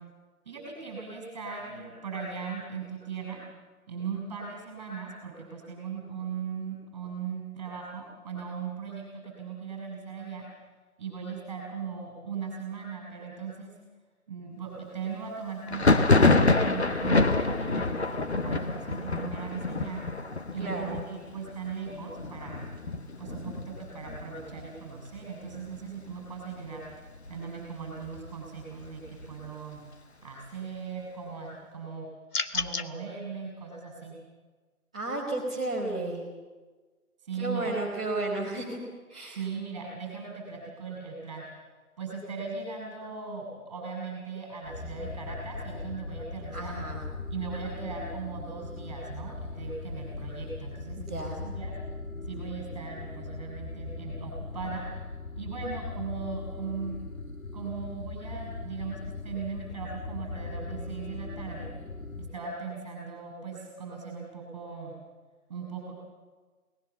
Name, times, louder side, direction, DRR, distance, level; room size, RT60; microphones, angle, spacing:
voice 1, 0.4-3.4 3.9-10.5 11.0-13.7 14.3-20.0 20.5-22.6 23.2-26.8 27.3-29.8 30.2-32.1 32.5-34.1 37.2-37.7 39.3-41.5 42.0-46.7 47.3-51.7 52.3-54.9 55.3-57.1 57.5-61.7 62.3-65.0 65.5-65.9, right 5 dB, 20° right, 0 dB, 6.3 m, -38 dB
Thunder, 15.7-25.2 25.5-26.1 26.4-27.4 27.8-29.5, left 3 dB, 45° left, 1.2 m, -27 dB
voice 2, 20.6-21.0 34.9-36.2 37.4-38.8 39.1-39.4 46.5-47.0 50.9-51.4, right 2 dB, 5° right, -9 dB, 1.2 m, -33 dB
sound 1, 32.3-32.9, left 3 dB, 85° left, 1.2 m, -30 dB
sound 2, 44.6-62.4, left 3 dB, 60° left, 1.9 m, -39 dB
21.0 x 19.0 x 7.0 m, 1.4 s
figure-of-eight pair, 160°, 45 cm